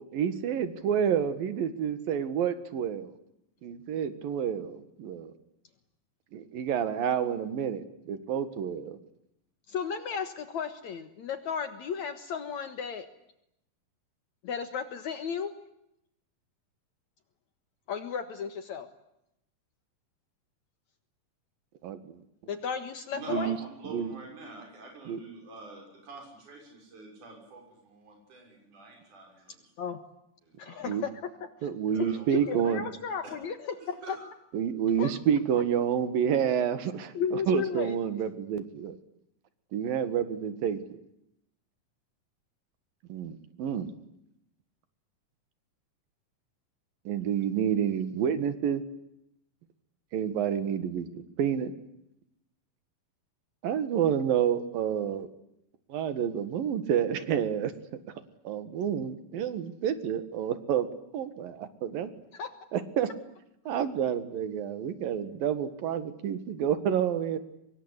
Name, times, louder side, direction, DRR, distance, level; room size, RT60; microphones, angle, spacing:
voice 1, 0.0-3.1 3.6-5.3 6.3-9.0 21.8-22.2 23.3-23.6 23.9-24.1 25.1-25.2 30.9-31.0 31.6-32.9 34.5-39.0 39.7-40.8 43.1-43.9 47.1-48.8 50.1-51.7 53.6-55.3 55.9-57.7 58.5-60.9 61.1-62.1 62.7-63.1 63.7-67.4, right 8 dB, 85° right, 12 dB, 3.6 m, -29 dB
voice 2, 9.7-13.1 14.4-15.5 17.9-18.9 22.5-23.5 29.8-30.0 30.6-31.3 31.6-34.2 35.0-35.1 37.1-38.3 62.3-62.5, left 7 dB, 60° left, 10 dB, 2.6 m, -34 dB
voice 3, 23.1-29.7 30.4-30.8 31.9-32.5 34.0-34.3, right 2 dB, 60° right, 2 dB, 7.8 m, -46 dB
25.0 x 22.0 x 10.0 m, 0.81 s
omnidirectional pair, 4.0 m